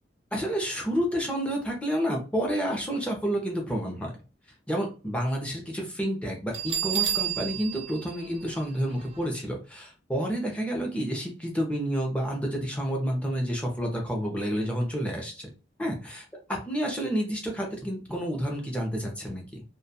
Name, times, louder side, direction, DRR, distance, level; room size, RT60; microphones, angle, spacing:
voice 1, 0.3-4.1 4.7-15.5 15.8-16.2 16.7-19.6, equal, 5° left, 0 dB, 0.6 m, -29 dB
Bell, 6.5-9.2, right 10 dB, 35° right, 0.4 m, -31 dB
2.3 x 2.2 x 2.7 m, 0.34 s
head